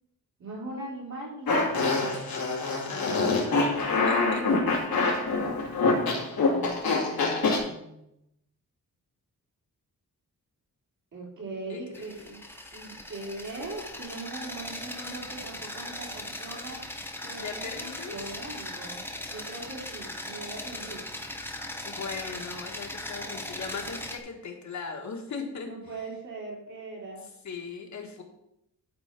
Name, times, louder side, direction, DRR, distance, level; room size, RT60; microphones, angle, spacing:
voice 1, 0.4-2.4 6.4-8.1 11.1-12.4 12.7-16.8 17.2-19.0 19.3-21.1 25.6-27.2, right 2 dB, 55° right, -4 dB, 3.4 m, -40 dB
Fart, 1.5-7.6, left 3 dB, 85° left, 2.5 m, -25 dB
voice 2, 2.9-4.4 11.7-12.4 17.4-18.2 21.8-25.7 27.4-28.2, left 5 dB, 55° left, 2 dB, 1.7 m, -38 dB
sound 1, 11.9-24.2, left 1 dB, 5° left, 0.9 m, -39 dB
11.5 x 4.5 x 6.0 m, 0.81 s
wide cardioid pair, 160°, 35 cm